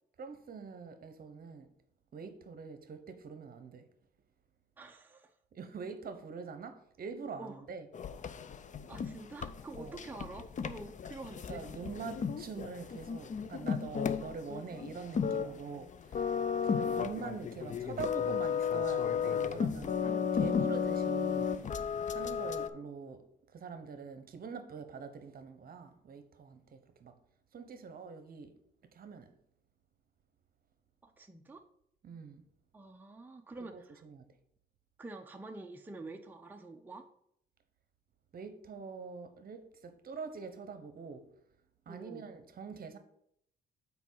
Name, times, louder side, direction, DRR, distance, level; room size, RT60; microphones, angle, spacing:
voice 1, 0.2-1.7 2.1-3.9 5.5-7.9 9.8-10.0 11.5-27.2 27.5-28.5 28.8-29.3 32.0-32.4 33.7-34.3 38.3-41.3 41.9-43.0, right 5 dB, 50° right, 1.0 m, -45 dB
voice 2, 4.8-5.3 7.4-7.6 8.9-11.6 31.0-31.6 32.7-34.0 35.0-37.1 41.9-42.2, right 2 dB, 10° right, 0.6 m, -47 dB
sound 1, 7.9-22.7, left 7 dB, 40° left, 0.5 m, -34 dB
6.0 x 4.7 x 5.7 m
cardioid pair, 90°, 20 cm